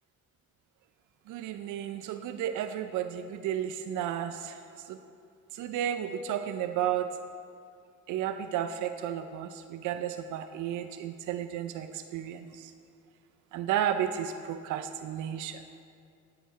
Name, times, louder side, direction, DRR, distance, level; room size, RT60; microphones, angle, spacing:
voice 1, 1.3-4.6 4.9-5.0 5.5-7.1 8.1-12.7 13.5-15.6, right 10 dB, 80° right, 9 dB, 0.5 m, -33 dB
11.0 x 8.0 x 4.6 m, 2.5 s
cardioid pair, 90°, 30 cm